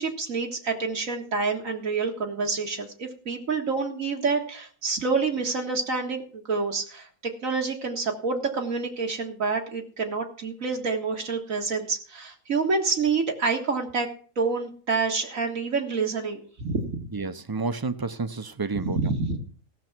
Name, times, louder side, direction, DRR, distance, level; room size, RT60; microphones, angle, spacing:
voice 1, 0.0-14.1 14.4-17.0 18.8-19.4, right 4 dB, 85° right, 1 dB, 2.0 m, -28 dB
voice 2, 17.1-19.1, right 4 dB, 30° right, 12 dB, 0.4 m, -30 dB
16.5 x 6.8 x 6.0 m, 0.43 s
omnidirectional pair, 1.4 m